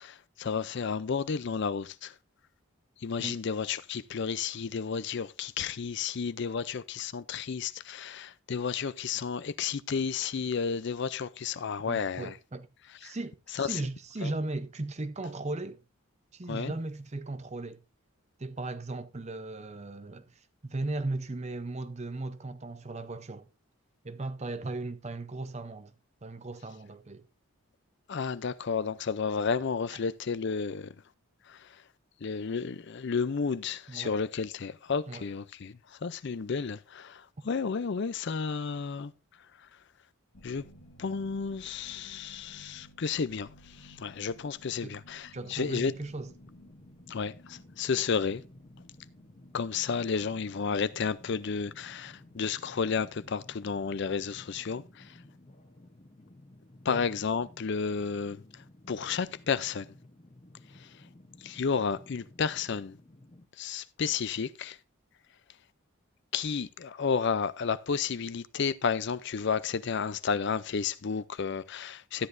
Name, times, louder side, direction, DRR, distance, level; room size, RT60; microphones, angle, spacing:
voice 1, 0.0-2.1 3.0-12.3 13.0-13.2 13.5-13.8 14.2-14.3 16.5-16.7 28.1-30.9 31.5-31.8 32.2-39.1 39.6-39.7 40.4-40.7 41.0-45.9 47.1-48.4 49.5-55.2 56.8-59.9 60.7-61.0 61.4-63.0 63.6-64.8 66.3-72.3, left 5 dB, 55° left, 0.5 m, -32 dB
voice 2, 11.9-12.7 13.0-15.8 16.3-17.8 18.4-23.5 24.0-25.9 26.2-27.2 33.9-34.1 35.1-35.2 44.8-44.9 45.3-46.3 56.9-57.0, right 2 dB, 30° right, 0.7 m, -37 dB
sound 1, 40.3-55.5, equal, 75° left, 1.3 m, -58 dB
sound 2, 45.8-63.5, left 1 dB, 30° left, 0.8 m, -55 dB
13.0 x 9.9 x 2.6 m
head